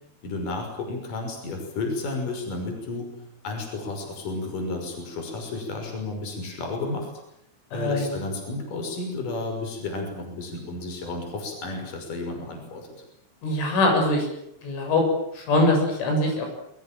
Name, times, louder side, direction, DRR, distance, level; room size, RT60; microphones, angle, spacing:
voice 1, 0.2-3.1 3.4-7.1 7.7-12.9, left 3 dB, 45° left, 3 dB, 7.4 m, -32 dB
voice 2, 7.7-8.1 13.4-14.3 14.6-15.0 15.3-16.5, left 2 dB, 80° left, 2 dB, 9.7 m, -22 dB
29.0 x 22.5 x 7.7 m, 0.79 s
omnidirectional pair, 5.5 m